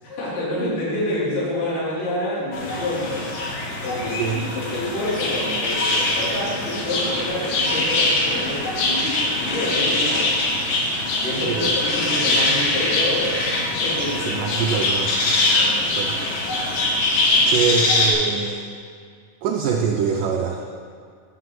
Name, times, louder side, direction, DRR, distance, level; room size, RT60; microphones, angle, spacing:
voice 1, 0.0-3.3 3.6-10.3 11.2-13.5 13.8-14.6 15.5-16.2, left 1 dB, 55° left, -9 dB, 4.6 m, -28 dB
sound 1, 2.5-18.1, left 2 dB, 85° left, 3.8 m, -22 dB
voice 2, 14.3-15.1 16.0-16.3 17.5-18.6 19.4-20.6, right 6 dB, 90° right, 1 dB, 1.8 m, -24 dB
9.9 x 6.0 x 7.8 m, 2.1 s
omnidirectional pair, 4.6 m